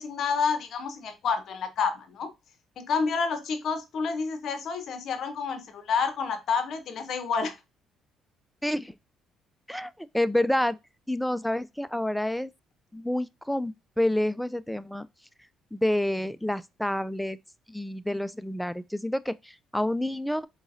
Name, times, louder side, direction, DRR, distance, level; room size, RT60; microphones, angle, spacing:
voice 1, 0.0-2.3 2.8-7.6, left 5 dB, 60° left, 0.8 m, -29 dB
voice 2, 8.6-8.9 9.7-10.8 11.1-12.5 12.9-15.1 15.7-17.4 17.7-20.5, left 1 dB, 5° left, 0.3 m, -28 dB
4.7 x 3.0 x 2.6 m
cardioid pair, 85°, 0 cm